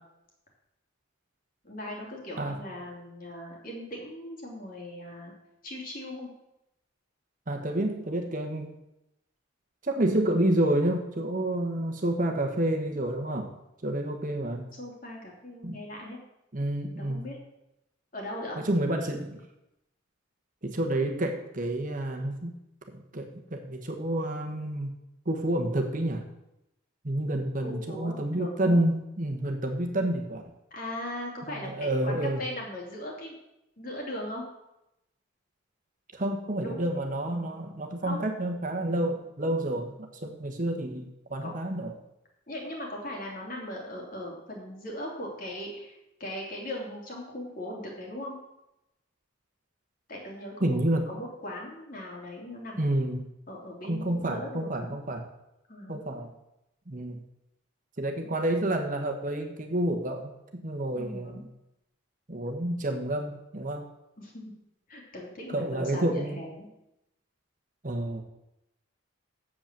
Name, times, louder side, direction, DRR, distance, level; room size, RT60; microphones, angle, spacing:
voice 1, 1.6-5.3 5.6-6.3 14.8-16.2 17.0-17.4 18.1-18.6 27.6-28.8 30.7-33.4 33.8-34.4 36.6-36.9 38.0-38.2 41.4-41.5 42.5-48.4 50.1-50.7 51.1-53.0 53.5-54.9 55.7-56.0 58.2-58.4 60.9-61.4 64.2-64.4 64.9-66.7, left 1 dB, 40° left, -1 dB, 2.9 m, -39 dB
voice 2, 7.5-8.7 9.8-13.5 13.8-14.7 15.6-15.8 16.5-17.2 18.6-19.4 20.6-22.5 22.9-24.9 25.2-26.2 27.0-30.5 31.6-32.4 36.1-41.9 50.6-51.1 52.8-53.2 53.9-55.2 55.9-56.3 56.9-57.2 58.0-61.4 62.3-63.8 65.5-66.4 67.8-68.2, right 1 dB, 40° right, 4 dB, 1.2 m, -29 dB
8.0 x 7.4 x 7.4 m, 0.87 s
head